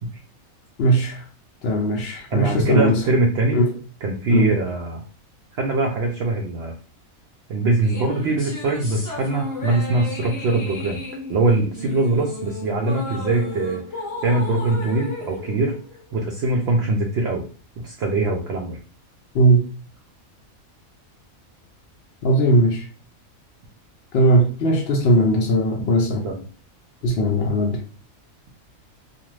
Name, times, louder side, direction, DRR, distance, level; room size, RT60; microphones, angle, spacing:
voice 1, 0.8-1.2 1.6-3.0 3.5-3.7 4.3-4.5 19.3-19.6 22.2-22.8 24.1-26.2 27.0-27.8, right 1 dB, 65° left, 1 dB, 0.6 m, -18 dB
voice 2, 2.3-3.6 4.0-5.0 5.6-6.7 7.5-11.0 11.3-15.8 16.1-17.4 17.8-18.8 25.8-25.9 26.2-26.4, right 2 dB, 65° right, 0 dB, 0.7 m, -22 dB
sound 1, 7.8-16.4, left 2 dB, 20° left, 0.5 m, -34 dB
2.5 x 2.4 x 3.1 m, 0.40 s
omnidirectional pair, 1.4 m